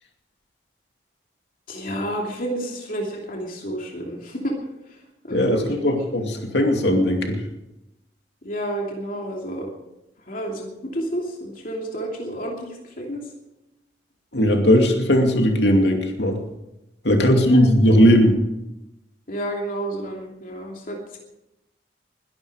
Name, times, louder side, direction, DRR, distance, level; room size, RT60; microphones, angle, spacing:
voice 1, 1.7-4.5 5.2-5.7 8.4-9.7 10.3-13.2 17.1-17.6 19.3-21.2, right 1 dB, 50° left, 0 dB, 2.8 m, -30 dB
voice 2, 5.3-7.4 14.3-16.4 17.0-18.4, equal, 70° left, 3 dB, 2.6 m, -18 dB
21.0 x 12.0 x 5.0 m, 0.94 s
head